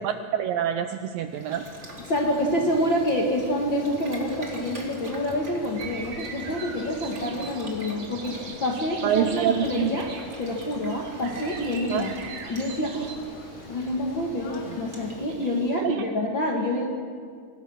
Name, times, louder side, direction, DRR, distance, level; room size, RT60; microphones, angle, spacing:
voice 1, 0.0-1.6 9.0-9.9 11.9-12.0 15.8-16.0, right 9 dB, 80° right, 8 dB, 2.0 m, -26 dB
Boiling, 1.3-15.8, right 1 dB, 20° right, 2.3 m, -45 dB
sound 1, 1.6-15.2, left 4 dB, 75° left, 4.1 m, -45 dB
voice 2, 2.1-10.1 10.4-12.1 12.5-13.2 13.7-16.9, left 1 dB, 50° left, 0 dB, 1.4 m, -27 dB
sound 2, 5.8-13.2, right 5 dB, 60° right, 3.6 m, -41 dB
26.5 x 19.5 x 6.4 m, 2.2 s
omnidirectional pair, 4.7 m